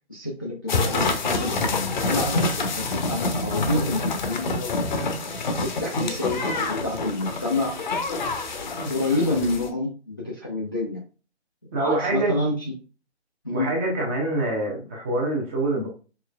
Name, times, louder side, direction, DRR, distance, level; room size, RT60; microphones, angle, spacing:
voice 1, 0.1-2.4 2.7-7.8 8.9-11.0 11.8-12.7 13.4-13.7, left 2 dB, 20° left, -3 dB, 0.4 m, -28 dB
sound 1, 0.7-9.7, left 3 dB, 40° left, 0.7 m, -27 dB
voice 2, 8.8-9.2 11.7-12.3 13.5-15.9, right 2 dB, 10° right, -1 dB, 0.6 m, -26 dB
4.9 x 3.0 x 2.3 m, 0.35 s
figure-of-eight pair, 145°, 35 cm